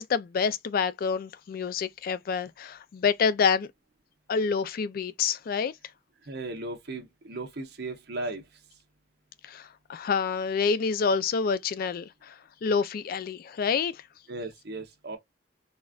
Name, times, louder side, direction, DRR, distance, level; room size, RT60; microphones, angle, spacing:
voice 1, 0.0-3.7 4.3-5.7 9.4-12.3 12.6-13.9, left 5 dB, 55° left, 0.3 m, -27 dB
voice 2, 6.3-8.4 14.3-15.2, right 2 dB, 65° right, 0.9 m, -36 dB
4.0 x 2.5 x 2.3 m
head